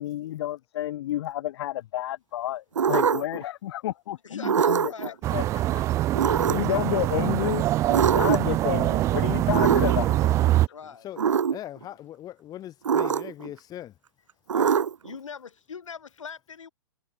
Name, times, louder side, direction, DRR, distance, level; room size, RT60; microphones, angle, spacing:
voice 1, 0.0-5.4 6.5-7.7 8.1-10.2, left 13 dB, 55° left, 1.4 m, -30 dB
sound 1, 2.8-3.4 4.4-5.1 6.1-6.8 7.9-8.6 9.5-10.2 11.2-11.6 12.8-13.5 14.5-15.1, right 7 dB, 90° right, 0.9 m, -23 dB
voice 2, 4.2-5.4 5.7-5.8 9.8-11.1 13.0-13.2 14.5-14.8 15.0-16.7, left 6 dB, 85° left, 5.4 m, -42 dB
sound 2, 5.2-10.7, right 15 dB, 20° right, 0.3 m, -24 dB
voice 3, 10.9-11.2 11.5-13.9, left 12 dB, 25° left, 2.3 m, -40 dB
hypercardioid pair, 130°, 16 cm